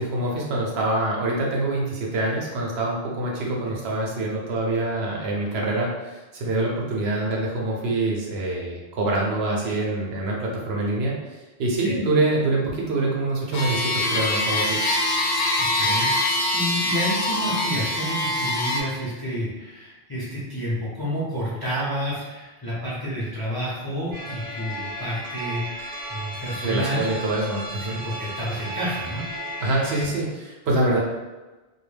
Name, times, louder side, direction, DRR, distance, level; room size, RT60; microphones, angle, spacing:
voice 1, 0.0-11.1 11.6-14.9 26.6-28.0 29.6-31.0, right 2 dB, 75° right, -2 dB, 0.9 m, -25 dB
sound 1, 13.5-18.8, left 1 dB, 65° left, 0.7 m, -24 dB
voice 2, 15.6-27.0 27.9-29.3, equal, 30° left, -8 dB, 0.5 m, -30 dB
sound 2, 24.1-30.0, right 1 dB, 35° right, 0.5 m, -35 dB
2.2 x 2.1 x 3.2 m, 1.2 s
omnidirectional pair, 1.1 m